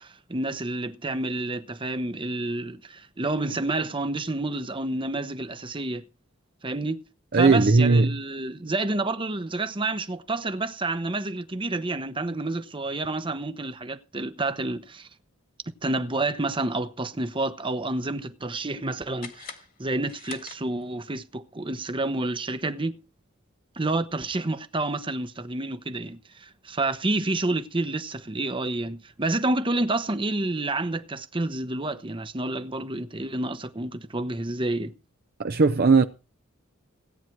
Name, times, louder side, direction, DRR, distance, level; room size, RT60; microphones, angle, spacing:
voice 1, 0.0-6.0 6.6-7.0 7.3-15.1 15.8-23.0 23.8-34.9, right 2 dB, 25° right, 0.9 m, -29 dB
voice 2, 7.3-8.2 35.4-36.0, right 3 dB, 50° right, 0.7 m, -18 dB
sound 1, 19.2-21.1, left 6 dB, 45° left, 2.0 m, -44 dB
17.5 x 9.2 x 4.6 m
head